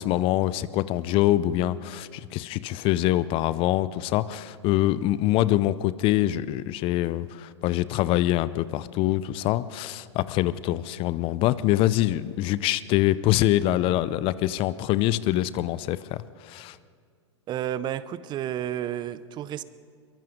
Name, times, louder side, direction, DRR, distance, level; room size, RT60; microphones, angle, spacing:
voice 1, 0.0-16.8, left 14 dB, 35° left, 17 dB, 0.6 m, -24 dB
voice 2, 17.5-19.6, right 11 dB, 30° right, 16 dB, 0.7 m, -31 dB
23.0 x 22.5 x 5.3 m, 2.1 s
hypercardioid pair, 105°, 15 cm